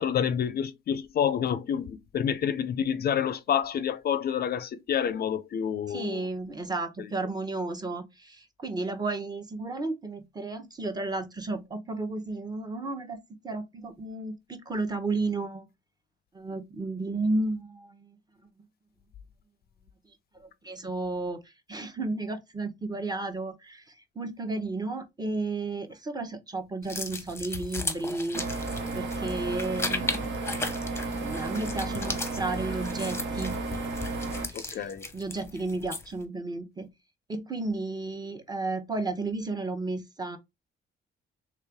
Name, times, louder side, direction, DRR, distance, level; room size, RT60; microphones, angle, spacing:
voice 1, 0.0-6.3 7.0-7.1 34.5-35.1, left 8 dB, 50° left, 0.4 m, -28 dB
voice 2, 5.9-13.2 13.4-15.7 16.3-18.1 20.6-21.4 21.7-23.8 24.2-28.4 28.9-30.4 31.2-33.6 34.5-36.9 37.3-40.4, right 2 dB, 20° right, 0.8 m, -33 dB
sound 1, 26.8-36.2, left 3 dB, 15° left, 0.8 m, -36 dB
sound 2, 28.3-34.5, right 3 dB, 75° right, 1.0 m, -33 dB
3.2 x 2.9 x 3.4 m
cardioid pair, 90°, 20 cm